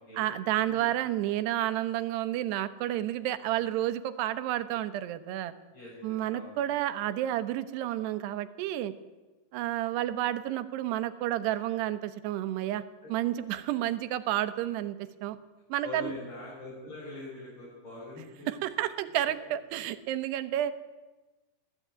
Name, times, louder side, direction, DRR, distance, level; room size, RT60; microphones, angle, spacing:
voice 1, 0.1-5.5 6.0-8.9 9.5-12.8 13.1-15.4 15.7-16.1 18.5-20.7, right 13 dB, 75° right, 11 dB, 3.0 m, -30 dB
voice 2, 5.7-6.5 13.0-13.1 15.8-18.4, left 2 dB, 30° left, -5 dB, 6.7 m, -43 dB
21.0 x 15.5 x 9.2 m, 1.2 s
omnidirectional pair, 5.0 m